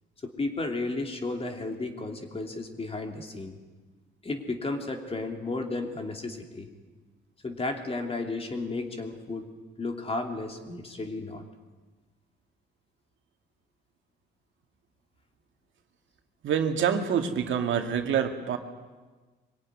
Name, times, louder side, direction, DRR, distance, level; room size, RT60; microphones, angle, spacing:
voice 1, 0.2-3.6 4.2-6.7 7.4-9.5 9.8-11.4, left 2 dB, 30° left, 4 dB, 3.0 m, -33 dB
voice 2, 16.4-18.6, right 8 dB, 75° right, 5 dB, 2.1 m, -26 dB
23.5 x 17.5 x 9.8 m, 1.3 s
cardioid pair, 90°, 20 cm